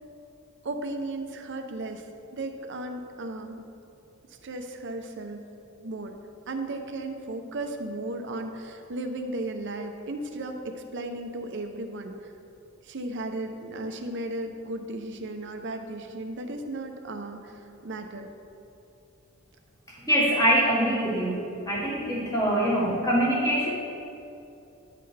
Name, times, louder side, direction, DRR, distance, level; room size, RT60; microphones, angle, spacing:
voice 1, 0.6-2.1 2.3-3.6 4.4-5.4 5.8-6.1 6.5-12.3 12.8-18.3, right 2 dB, 55° right, 5 dB, 0.7 m, -35 dB
voice 2, 19.9-23.7, equal, 15° left, -5 dB, 1.7 m, -24 dB
10.5 x 7.9 x 3.4 m, 2.7 s
head